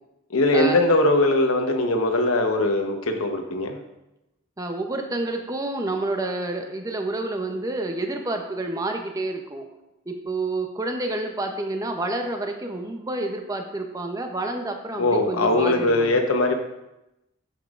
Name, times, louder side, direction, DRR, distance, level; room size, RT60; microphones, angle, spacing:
voice 1, 0.3-3.8 15.0-16.5, left 2 dB, 80° left, 5 dB, 1.0 m, -21 dB
voice 2, 4.6-9.6 10.1-16.2, right 2 dB, 15° right, 4 dB, 0.6 m, -29 dB
9.8 x 7.0 x 2.4 m, 0.92 s
head